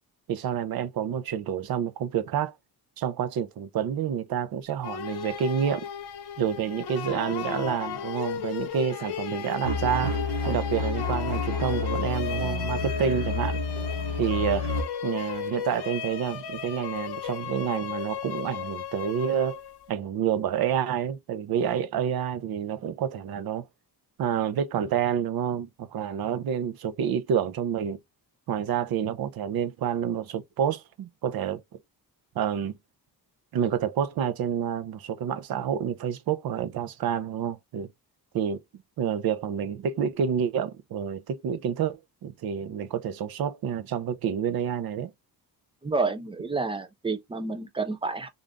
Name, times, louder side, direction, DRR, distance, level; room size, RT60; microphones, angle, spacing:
voice 1, 0.3-2.5 3.0-5.9 6.4-10.1 10.5-13.6 14.2-14.7 15.0-19.6 19.9-23.6 24.2-28.0 28.5-31.6 32.4-32.8 33.5-37.9 38.3-38.6 39.0-45.1, right 8 dB, 65° right, 0.6 m, -28 dB
sound 1, 4.8-19.9, left 8 dB, 75° left, 0.8 m, -35 dB
sound 2, 9.6-14.8, left 3 dB, 85° right, 1.1 m, -29 dB
voice 2, 45.8-48.3, right 3 dB, 15° right, 0.4 m, -29 dB
3.8 x 2.6 x 3.4 m
wide cardioid pair, 180°, 40 cm